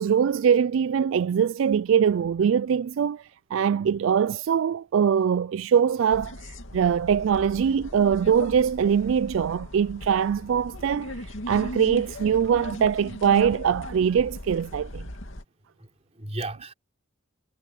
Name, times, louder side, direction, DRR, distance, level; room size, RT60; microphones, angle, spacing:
voice 1, 0.0-15.0, right 7 dB, 70° right, 0.3 m, -23 dB
sound 1, 6.1-15.4, left 1 dB, 70° left, 2.5 m, -38 dB
voice 2, 15.6-16.7, right 2 dB, 30° right, 4.9 m, -37 dB
head